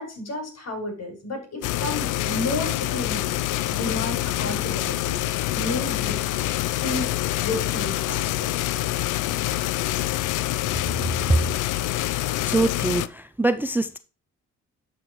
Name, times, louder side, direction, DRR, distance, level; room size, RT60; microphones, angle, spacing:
voice 1, 0.0-3.3 3.7-5.2 5.5-6.2 6.8-8.6, left 1 dB, 55° left, 5.4 m, -32 dB
sound 1, 1.6-13.1, left 14 dB, 80° left, 0.6 m, -26 dB
voice 2, 12.4-14.0, right 2 dB, 5° right, 0.4 m, -24 dB
11.5 x 6.2 x 3.1 m
cardioid pair, 90°, 30 cm